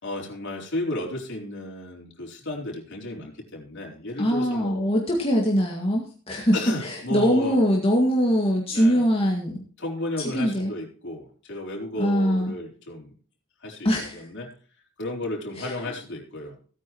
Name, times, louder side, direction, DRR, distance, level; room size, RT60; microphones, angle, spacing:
voice 1, 0.0-4.9 6.5-7.6 8.7-9.1 9.8-13.1 13.6-14.5 15.0-16.6, left 2 dB, 55° left, -1 dB, 4.1 m, -33 dB
voice 2, 4.2-9.6 10.2-10.7 12.0-12.5 13.8-14.3 15.6-15.9, equal, 25° left, -1 dB, 2.0 m, -23 dB
16.5 x 9.7 x 3.1 m, 0.42 s
head